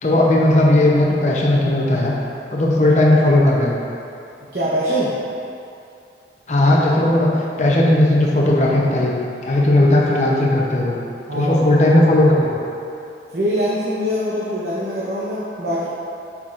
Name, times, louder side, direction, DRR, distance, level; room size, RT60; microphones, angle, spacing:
voice 1, 0.0-2.1 2.5-3.7 6.5-9.1 9.4-11.0 11.3-12.5, left 1 dB, 40° left, -3 dB, 0.8 m, -16 dB
voice 2, 4.5-5.1 11.3-11.7 13.3-15.9, equal, 55° right, -8 dB, 0.9 m, -23 dB
7.3 x 6.0 x 2.6 m, 2.6 s
head